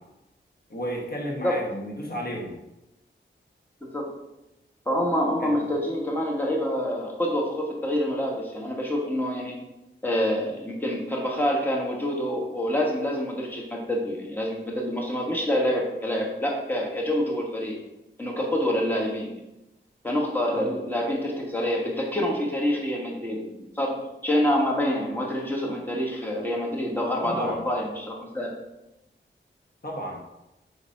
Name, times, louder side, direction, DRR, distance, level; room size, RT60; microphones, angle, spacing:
voice 1, 0.7-2.5 5.4-5.6 20.5-20.7 27.2-27.6 29.8-30.2, equal, 50° left, -1 dB, 1.2 m, -32 dB
voice 2, 3.8-4.2 4.8-9.5 10.0-17.8 18.2-19.4 20.0-24.0 24.2-28.5, equal, 10° left, -2 dB, 1.2 m, -27 dB
4.9 x 4.1 x 5.1 m, 0.92 s
wide cardioid pair, 90°, 20 cm